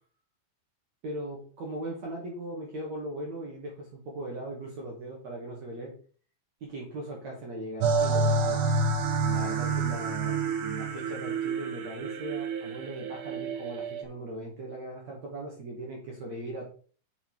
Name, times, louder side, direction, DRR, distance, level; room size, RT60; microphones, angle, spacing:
voice 1, 1.0-5.9 6.6-8.6 9.2-16.7, right 1 dB, 55° right, -1 dB, 2.2 m, -39 dB
sound 1, 7.8-14.0, right 3 dB, 85° right, 4.1 m, -28 dB
7.0 x 6.6 x 4.6 m, 0.43 s
omnidirectional pair, 5.4 m